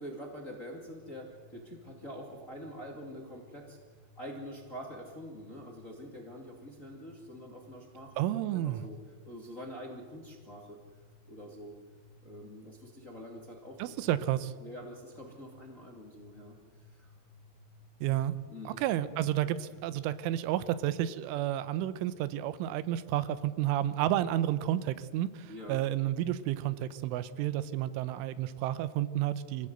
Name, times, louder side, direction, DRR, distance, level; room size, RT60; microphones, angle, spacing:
voice 1, 0.0-3.8 4.1-8.1 8.5-9.0 9.2-10.8 11.3-11.8 12.2-13.9 14.6-16.6 16.9-17.1 18.5-18.8 25.5-25.8, equal, 30° left, 0 dB, 1.6 m, -45 dB
sound 1, 0.8-20.4, left 2 dB, 60° left, 4.3 m, -60 dB
voice 2, 8.2-8.8 13.8-14.5 18.0-18.3 18.7-29.7, right 12 dB, 90° right, 14 dB, 3.3 m, -31 dB
25.5 x 16.5 x 8.0 m, 1.5 s
omnidirectional pair, 5.5 m